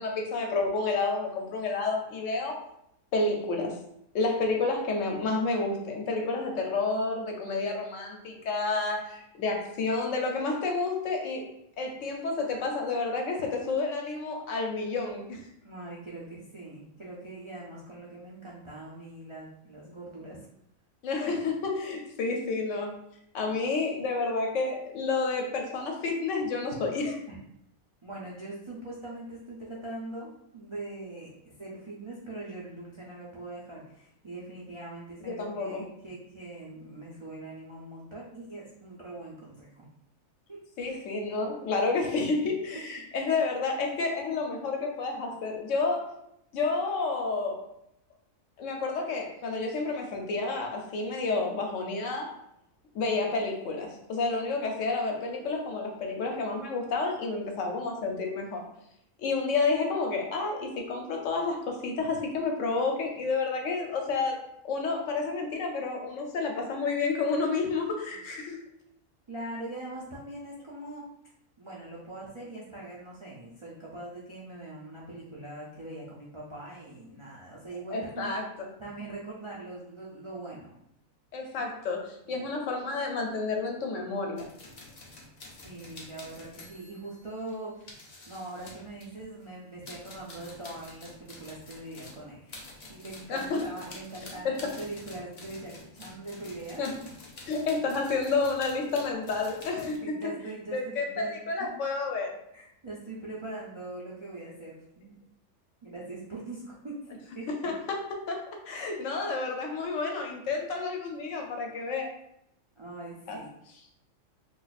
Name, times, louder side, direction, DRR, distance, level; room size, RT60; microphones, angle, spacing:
voice 1, 0.0-2.6 3.1-3.8 4.1-11.5 11.8-15.4 21.0-23.0 23.3-27.2 35.2-35.8 40.8-46.1 46.5-47.6 48.6-52.3 52.9-58.7 59.2-68.6 77.9-78.7 81.3-84.5 93.3-93.6 94.4-94.7 96.8-96.9 97.5-100.2 100.7-102.4 107.5-107.7 108.3-108.4 108.7-112.1 113.3-113.4, left 3 dB, 70° left, 2 dB, 0.9 m, -30 dB
voice 2, 15.6-20.5 27.3-27.4 28.0-39.8 40.5-41.0 68.1-68.2 69.3-71.0 71.6-78.3 78.8-80.7 82.3-82.4 85.5-87.9 88.3-92.6 92.9-96.9 99.6-101.3 101.6-101.7 102.5-105.2 105.8-107.0 107.3-107.7 112.8-113.5, right 2 dB, 50° right, -6 dB, 0.3 m, -42 dB
sound 1, 84.4-89.5 89.8-100.0, left 2 dB, 45° left, 0.5 m, -48 dB
2.5 x 2.4 x 4.0 m, 0.76 s
omnidirectional pair, 1.4 m